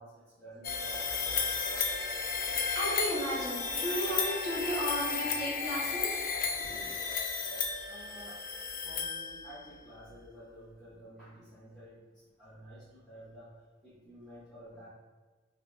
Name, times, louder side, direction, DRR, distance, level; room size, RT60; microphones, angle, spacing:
voice 1, 0.0-1.5 4.0-4.1 5.9-6.0 7.9-8.4 8.8-13.5 13.8-14.9, equal, 5° left, -14 dB, 0.9 m, -51 dB
sound 1, 0.6-9.7, left 5 dB, 50° left, 0.4 m, -33 dB
voice 2, 2.7-6.1 6.4-6.9, equal, 20° left, -9 dB, 1.2 m, -34 dB
2.9 x 2.7 x 3.2 m, 1.3 s
head